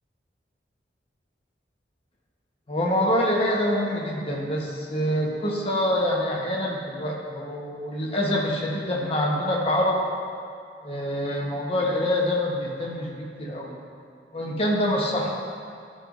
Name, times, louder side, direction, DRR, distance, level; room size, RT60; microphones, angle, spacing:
voice 1, 2.7-10.0 10.8-13.8 14.3-15.3, left 1 dB, 30° left, -2 dB, 1.0 m, -25 dB
12.5 x 5.5 x 2.5 m, 2.3 s
head